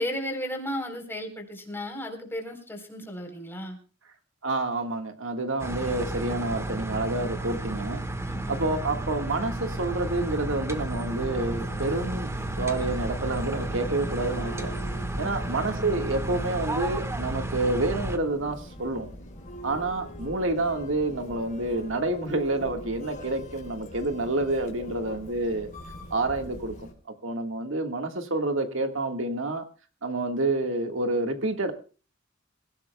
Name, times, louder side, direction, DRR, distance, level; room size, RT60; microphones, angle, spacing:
voice 1, 0.0-3.8 8.2-8.6 15.2-15.3, left 1 dB, 10° left, 2 dB, 4.0 m, -34 dB
voice 2, 4.4-8.0 8.5-12.3 12.6-14.7 15.2-19.1 19.6-25.7 26.1-26.8 27.2-29.6 30.0-31.7, right 2 dB, 70° right, 6 dB, 1.8 m, -28 dB
sound 1, 5.6-18.2, right 1 dB, 15° right, 1.4 m, -32 dB
sound 2, 10.8-26.9, equal, 40° left, 3.8 m, -42 dB
26.5 x 16.5 x 2.3 m, 0.36 s
head